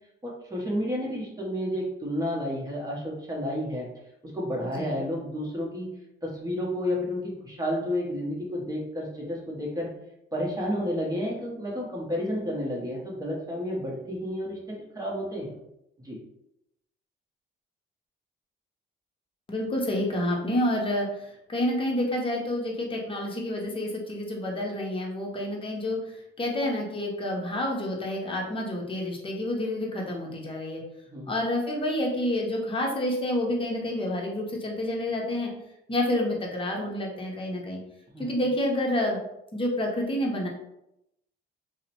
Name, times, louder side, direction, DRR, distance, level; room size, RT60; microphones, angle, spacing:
voice 1, 0.2-3.9 4.2-5.9 6.2-9.9 10.3-15.6 16.0-16.2 31.1-31.3 38.1-38.3, equal, 20° right, -3 dB, 0.8 m, -31 dB
voice 2, 4.6-5.0 19.5-30.8 31.3-35.5 35.9-37.8 38.2-39.2 39.5-40.5, left 1 dB, 25° left, -1 dB, 0.7 m, -29 dB
2.7 x 2.0 x 2.9 m, 0.83 s
cardioid pair, 90°, 20 cm